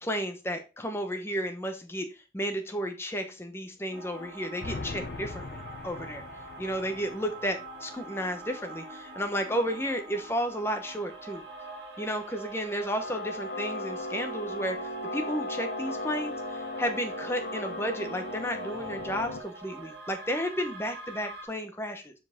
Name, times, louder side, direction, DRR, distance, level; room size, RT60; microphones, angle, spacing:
voice 1, 0.0-2.1 2.3-6.2 6.6-11.4 12.0-22.1, equal, 15° left, 5 dB, 0.9 m, -33 dB
sound 1, 3.9-21.4, right 2 dB, 75° right, 1.8 m, -44 dB
sound 2, 4.6-7.5 13.0-19.4, left 2 dB, 65° left, 0.6 m, -37 dB
6.5 x 4.8 x 3.6 m, 0.31 s
head